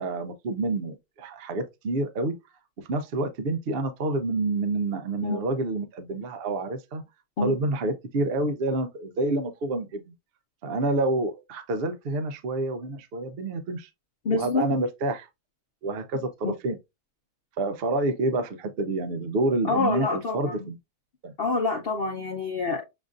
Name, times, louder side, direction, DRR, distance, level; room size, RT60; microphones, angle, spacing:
voice 1, 0.0-2.3 2.8-7.0 7.4-10.0 10.6-13.9 14.3-15.3 15.8-16.8 17.6-20.7 21.2-21.3, right 2 dB, 60° right, 0.6 m, -28 dB
voice 2, 14.2-14.7 16.4-16.5 19.7-20.7 21.4-22.9, left 3 dB, 50° left, 0.8 m, -27 dB
7.2 x 2.5 x 2.4 m
omnidirectional pair, 1.6 m